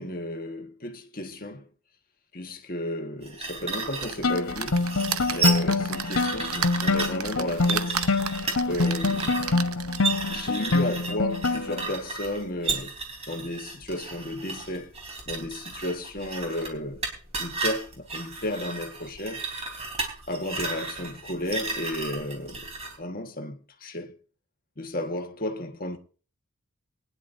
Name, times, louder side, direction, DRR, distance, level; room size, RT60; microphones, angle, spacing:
voice 1, 0.0-1.7 2.3-4.8 5.3-8.0 8.7-9.6 10.3-12.9 13.3-14.9 15.3-17.0 17.4-19.4 20.3-22.7 23.0-24.1 24.8-26.0, left 1 dB, 40° left, 1.5 m, -33 dB
sound 1, 3.2-23.0, right 4 dB, 30° right, 3.6 m, -34 dB
sound 2, 4.0-10.2 10.8-10.9 11.1-11.2, right 8 dB, 75° right, 0.8 m, -35 dB
sound 3, 4.2-11.9, left 3 dB, 70° left, 1.0 m, -26 dB
22.5 x 10.5 x 2.7 m
head